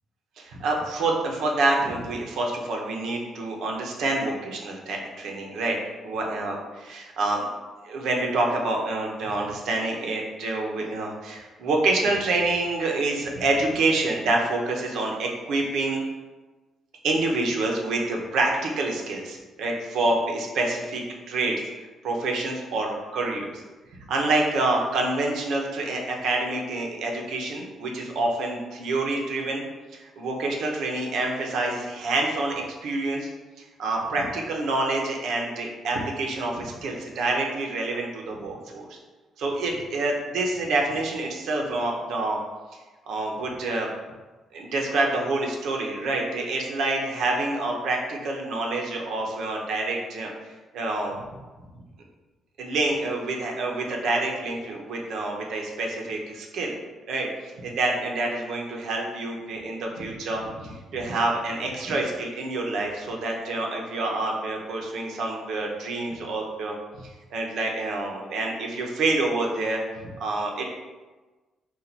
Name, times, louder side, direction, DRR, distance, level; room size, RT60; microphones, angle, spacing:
voice 1, 0.4-5.8 6.0-6.6 6.8-7.4 7.8-16.0 17.0-21.0 21.3-21.6 22.0-23.6 24.1-29.6 29.9-33.3 33.8-38.9 39.4-42.4 43.1-43.9 44.5-50.3 50.7-51.2 52.6-56.7 57.1-57.3 57.6-70.6, right 2 dB, 75° right, 0 dB, 0.8 m, -27 dB
4.4 x 2.5 x 4.0 m, 1.2 s
cardioid pair, 90°, 0 cm